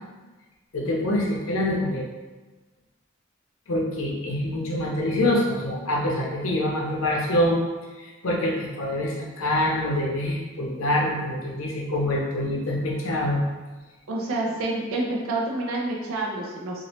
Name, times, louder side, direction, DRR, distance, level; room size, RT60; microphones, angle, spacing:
voice 1, 0.7-2.1 3.7-7.6 8.0-13.4, left 1 dB, 75° left, -2 dB, 0.7 m, -25 dB
voice 2, 14.1-16.8, right 2 dB, 80° right, -2 dB, 0.5 m, -28 dB
2.9 x 2.6 x 3.0 m, 1.2 s
head